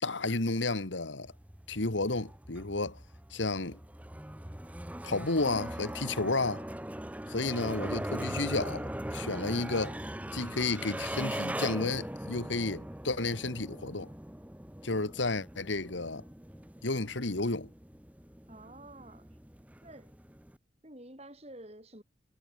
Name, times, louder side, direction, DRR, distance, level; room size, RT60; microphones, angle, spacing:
voice 1, 0.0-1.3 1.7-3.0 3.3-3.8 5.0-6.6 7.3-10.0 10.3-14.1 14.8-16.2 16.8-17.7, left 3 dB, 80° left, 1.9 m, -32 dB
sound 1, 1.2-20.6, right 1 dB, 10° right, 1.0 m, -40 dB
voice 2, 18.5-19.3 19.8-20.2 20.8-22.0, right 1 dB, 35° right, 6.7 m, -50 dB
head